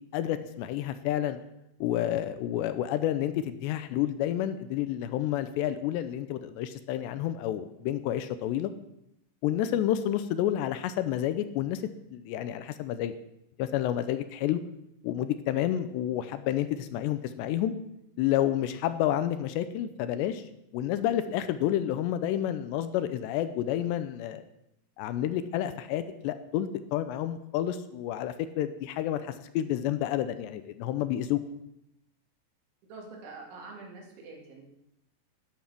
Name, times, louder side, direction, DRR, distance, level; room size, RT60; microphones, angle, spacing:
voice 1, 0.0-1.4 1.8-8.7 9.4-11.8 12.1-13.1 13.6-14.6 15.0-17.7 18.2-20.5 20.7-24.4 25.0-31.4, left 12 dB, 80° left, 11 dB, 2.7 m, -30 dB
voice 2, 32.9-34.7, right 3 dB, 85° right, -1 dB, 5.2 m, -45 dB
12.5 x 10.5 x 6.0 m, 0.83 s
omnidirectional pair, 5.2 m